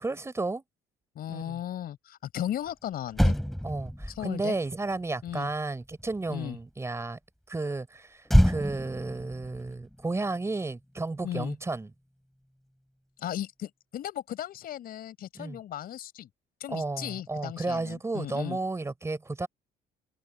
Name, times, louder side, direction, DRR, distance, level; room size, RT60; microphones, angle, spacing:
voice 1, 0.0-0.6 1.3-1.6 3.6-7.2 7.5-11.9 15.3-15.6 16.7-19.5, right 3 dB, 15° right, 3.9 m, -33 dB
voice 2, 1.1-3.4 4.1-4.6 5.2-5.5 6.3-6.6 11.2-11.5 13.2-16.3 16.6-18.6, left 11 dB, 60° left, 4.6 m, -36 dB
Motor vehicle (road), 2.7-2.8 3.1-6.6 8.3-10.9 11.1-11.4, equal, ahead, 3.8 m, -28 dB
cardioid pair, 110°, 17 cm